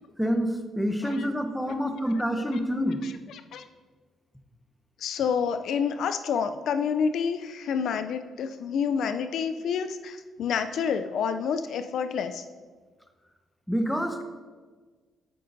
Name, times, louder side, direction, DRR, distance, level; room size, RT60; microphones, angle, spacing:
voice 1, 0.2-3.0 13.7-14.2, equal, ahead, 5 dB, 0.8 m, -27 dB
voice 2, 3.0-3.6 5.0-12.4, left 6 dB, 70° left, 9 dB, 0.4 m, -29 dB
12.5 x 5.6 x 2.6 m, 1.4 s
cardioid pair, 90°, 0 cm